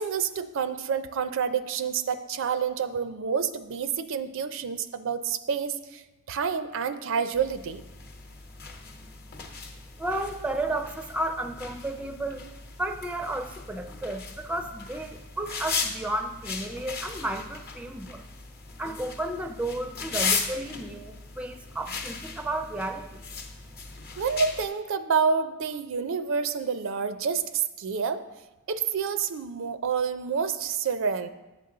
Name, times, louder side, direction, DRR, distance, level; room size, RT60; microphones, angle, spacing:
voice 1, 0.0-6.0 6.3-7.8 24.2-28.2 28.7-31.3, right 6 dB, 65° right, 11 dB, 0.4 m, -28 dB
sound 1, 7.3-24.7, left 5 dB, 45° left, 0.9 m, -37 dB
voice 2, 10.0-12.4 12.8-18.2 18.8-23.2, right 1 dB, 5° right, 6 dB, 0.4 m, -33 dB
8.1 x 6.8 x 3.8 m, 1.1 s
head